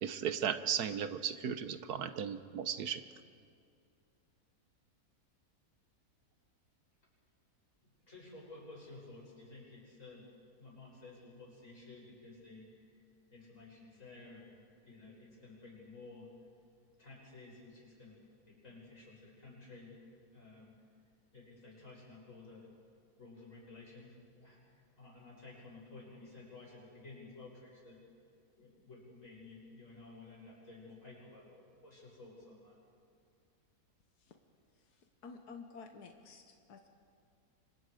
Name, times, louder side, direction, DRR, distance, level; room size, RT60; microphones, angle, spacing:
voice 1, 0.0-3.0, right 8 dB, 80° right, 11 dB, 1.4 m, -36 dB
voice 2, 7.8-10.2 10.6-13.0 13.3-14.6 14.8-16.3 17.0-18.2 18.4-20.7 21.3-22.7 23.2-28.0 28.6-32.8, left 3 dB, 55° left, -4 dB, 7.8 m, -53 dB
voice 3, 34.7-36.9, left 4 dB, 90° left, 5 dB, 1.8 m, -52 dB
30.0 x 25.5 x 5.0 m, 2.3 s
omnidirectional pair, 1.6 m